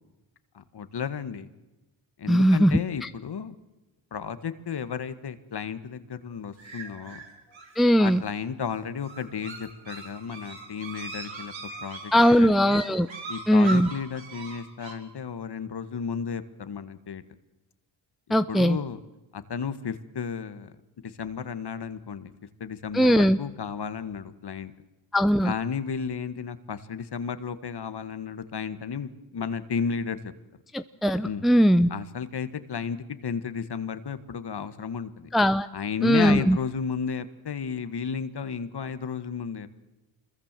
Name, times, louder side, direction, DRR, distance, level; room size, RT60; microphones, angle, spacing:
voice 1, 0.5-1.5 2.2-3.6 4.1-7.2 8.0-11.5 11.8-12.8 13.3-17.2 18.5-19.0 19.3-20.7 21.0-22.3 22.6-24.7 25.4-30.3 31.2-31.5 31.9-35.3 35.7-39.7, left 6 dB, 55° left, 12 dB, 1.8 m, -33 dB
voice 2, 2.3-3.1 7.8-8.2 12.1-13.1 13.5-13.9 18.3-18.8 22.9-23.4 25.1-25.5 30.7-31.9 35.3-35.7 36.0-36.6, equal, ahead, 10 dB, 0.8 m, -20 dB
sound 1, 6.6-14.9, right 3 dB, 75° right, 5.7 m, -40 dB
25.5 x 22.0 x 7.6 m, 1.0 s
cardioid pair, 60°, 46 cm